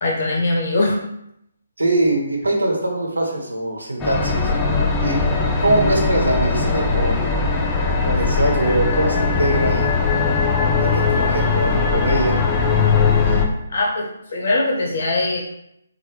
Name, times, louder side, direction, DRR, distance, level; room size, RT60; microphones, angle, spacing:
voice 1, 0.0-1.0 13.2-13.4 13.7-15.4, left 2 dB, 55° left, -1 dB, 0.9 m, -21 dB
voice 2, 1.8-4.5 5.0-5.2 5.6-7.3 8.1-9.9 10.8-12.4, right 1 dB, 85° right, 0 dB, 0.8 m, -22 dB
sound 1, 4.0-13.5, left 4 dB, 15° left, 0.4 m, -19 dB
2.9 x 2.1 x 3.3 m, 0.76 s
figure-of-eight pair, 145°, 0 cm